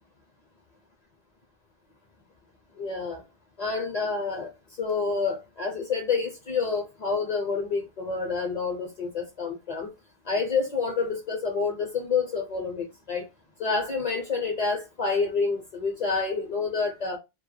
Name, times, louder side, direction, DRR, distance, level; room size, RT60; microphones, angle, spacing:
voice 1, 2.8-3.2 3.6-4.5 4.8-9.9 10.3-13.2 13.6-17.2, left 4 dB, 50° left, 0.6 m, -28 dB
2.1 x 2.1 x 3.2 m
omnidirectional pair, 1.1 m